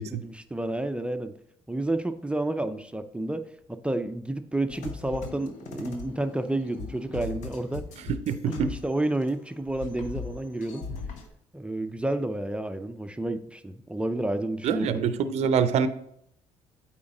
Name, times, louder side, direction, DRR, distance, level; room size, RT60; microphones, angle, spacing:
voice 1, 0.1-1.3 1.7-3.4 3.7-7.8 8.3-10.9 11.5-15.1, right 1 dB, 10° right, 9 dB, 0.6 m, -30 dB
sound 1, 4.7-9.4 9.6-11.3, left 4 dB, 75° left, 1.0 m, -39 dB
voice 2, 8.3-8.7 14.6-15.9, right 7 dB, 60° right, 12 dB, 0.5 m, -25 dB
8.6 x 4.4 x 3.8 m, 0.72 s
hypercardioid pair, 60°, 13 cm